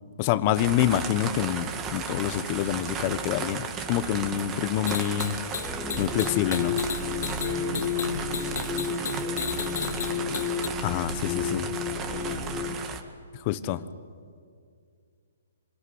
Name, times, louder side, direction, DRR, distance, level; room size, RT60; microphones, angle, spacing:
voice 1, 0.2-5.4 6.0-6.8 10.8-11.7 13.4-13.9, left 12 dB, 35° left, 13 dB, 1.2 m, -27 dB
sound 1, 0.5-13.0, right 6 dB, 20° right, 2.0 m, -35 dB
sound 2, 4.9-10.7, left 7 dB, 65° left, 0.9 m, -35 dB
sound 3, 5.6-12.8, left 6 dB, 10° left, 2.9 m, -32 dB
voice 2, 7.3-8.7 9.1-10.7 11.6-12.5, right 3 dB, 50° right, 4 dB, 5.9 m, -42 dB
26.5 x 21.0 x 9.6 m, 2.2 s
hypercardioid pair, 140°, 0 cm